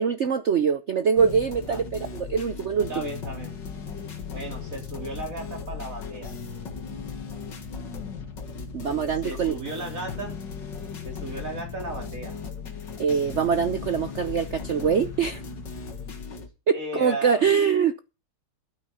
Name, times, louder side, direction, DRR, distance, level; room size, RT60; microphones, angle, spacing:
voice 1, 0.0-3.1 8.7-9.5 13.0-15.4 16.7-18.0, right 6 dB, 85° right, 0.6 m, -23 dB
sound 1, 1.2-16.5, left 5 dB, 60° left, 2.4 m, -37 dB
voice 2, 2.9-3.5 4.3-6.4 9.2-10.4 11.0-12.4 16.7-17.5, right 1 dB, 40° right, 3.9 m, -35 dB
12.5 x 9.3 x 5.6 m
omnidirectional pair, 2.2 m